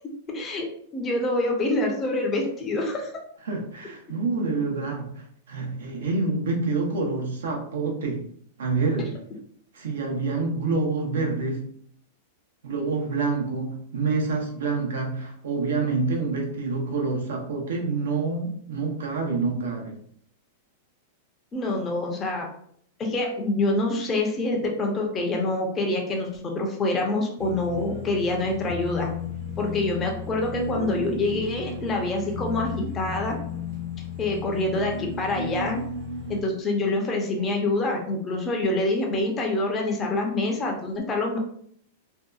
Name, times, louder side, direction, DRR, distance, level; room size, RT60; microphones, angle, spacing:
voice 1, 0.3-0.7 0.9-3.1 4.5-4.6 6.9-7.0 10.0-10.1 21.5-22.5 23.0-26.3 26.5-29.1 29.6-33.4 34.2-35.8 36.3-41.4, left 2 dB, 20° left, 1 dB, 0.5 m, -26 dB
voice 2, 3.5-8.2 8.6-9.1 9.7-11.7 12.6-20.0 37.4-37.5, right 3 dB, 85° right, 1 dB, 0.7 m, -27 dB
sound 1, 27.4-36.4, left 3 dB, 50° right, 0.7 m, -34 dB
2.7 x 2.2 x 2.3 m, 0.64 s
supercardioid pair, 145°, 0 cm